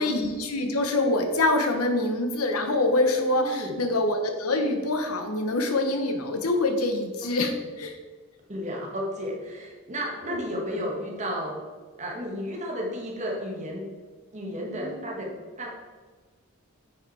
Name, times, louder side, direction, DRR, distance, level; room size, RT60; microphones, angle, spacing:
voice 1, 0.0-7.5 7.8-8.0 10.3-10.4 14.7-15.0, left 2 dB, 85° left, 5 dB, 1.2 m, -25 dB
voice 2, 3.4-3.8 8.5-11.6 12.0-13.8 14.3-15.7, equal, 30° right, -1 dB, 1.8 m, -33 dB
9.2 x 6.0 x 4.3 m, 1.4 s
head